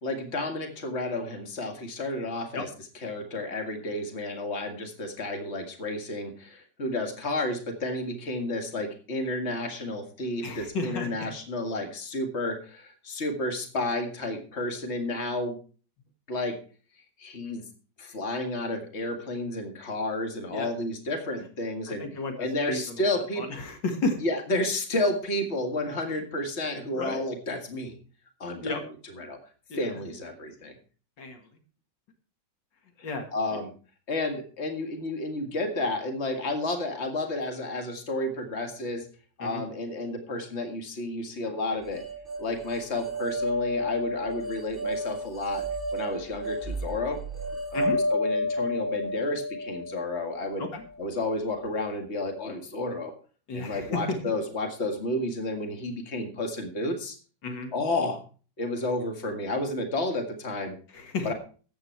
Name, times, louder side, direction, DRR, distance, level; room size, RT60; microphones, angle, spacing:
voice 1, 0.0-2.7 3.0-15.6 16.3-16.6 17.2-17.7 18.0-22.1 22.4-23.5 24.2-28.0 28.4-28.8 29.2-29.4 29.8-30.8 33.0-33.7 34.1-39.0 39.4-42.1 42.4-45.6 45.9-47.2 47.7-50.7 51.0-53.2 53.5-57.2 57.7-58.2 58.6-60.8 61.2-61.3, left 2 dB, 40° left, 5 dB, 2.2 m, -31 dB
voice 2, 10.4-11.1 20.5-20.7 21.9-22.3 22.7-24.2 26.9-27.2 28.6-28.8 29.7-29.9 31.2-31.4 33.0-33.3 39.4-39.6 47.7-48.0 50.6-50.8 53.5-54.2 57.4-57.7 60.9-61.3, left 3 dB, 80° left, 5 dB, 2.5 m, -32 dB
sound 1, 41.9-51.1, left 1 dB, 10° right, 4.4 m, -31 dB
13.5 x 9.1 x 4.6 m, 0.38 s
omnidirectional pair, 1.9 m